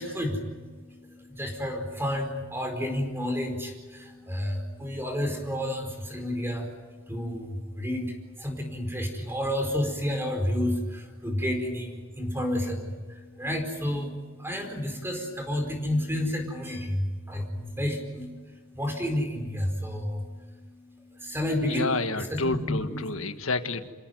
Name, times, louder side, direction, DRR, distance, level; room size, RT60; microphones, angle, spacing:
voice 1, 0.0-23.0, left 1 dB, 10° right, 4 dB, 4.6 m, -31 dB
voice 2, 21.6-23.9, left 3 dB, 75° left, 9 dB, 1.6 m, -29 dB
27.0 x 17.5 x 9.3 m, 1.5 s
head